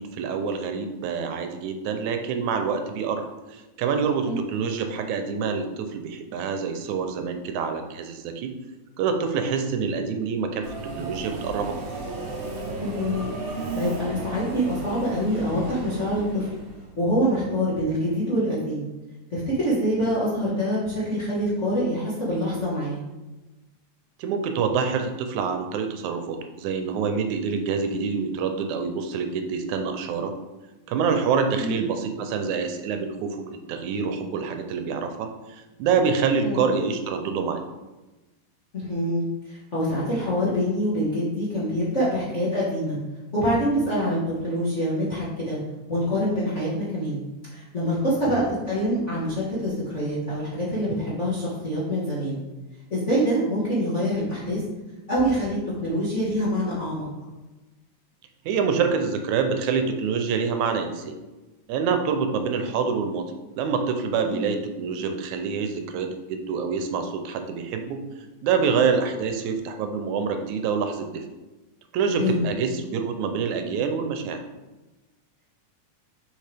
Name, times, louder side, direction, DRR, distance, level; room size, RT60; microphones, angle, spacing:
voice 1, 0.0-8.5 9.0-11.8 24.2-30.3 30.9-37.6 48.3-48.5 58.5-61.2 61.7-63.3 63.6-68.0 68.4-71.2 71.9-74.4, right 5 dB, 80° right, 6 dB, 2.0 m, -26 dB
Subway metro underground, 10.6-16.9, right 3 dB, 60° right, 1.3 m, -34 dB
voice 2, 12.8-13.3 13.7-16.5 17.0-18.9 19.3-23.0 31.6-31.8 36.4-36.7 38.7-43.0 43.3-44.2 44.4-45.6 45.9-47.2 47.5-52.4 52.9-54.6 55.1-57.0 64.3-64.5 72.2-72.5, equal, 35° left, -9 dB, 1.2 m, -25 dB
6.5 x 5.0 x 3.4 m, 1.1 s
omnidirectional pair, 3.4 m